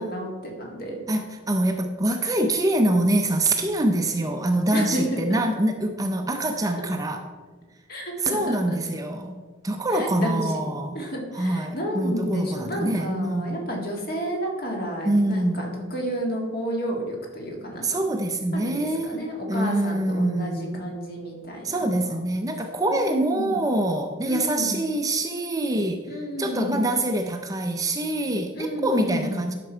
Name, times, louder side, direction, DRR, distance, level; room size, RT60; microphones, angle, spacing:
voice 1, 0.0-1.0 4.7-5.4 7.9-8.8 9.9-10.6 10.9-18.0 18.5-22.1 22.9-23.6 24.2-24.8 26.1-26.9 28.5-29.4, equal, 50° left, 0 dB, 1.9 m, -31 dB
voice 2, 1.1-7.2 8.2-11.0 11.3-13.7 15.0-15.7 17.8-19.2 19.5-20.8 21.6-29.5, right 1 dB, 15° right, 5 dB, 0.5 m, -25 dB
11.0 x 6.0 x 4.5 m, 1.4 s
head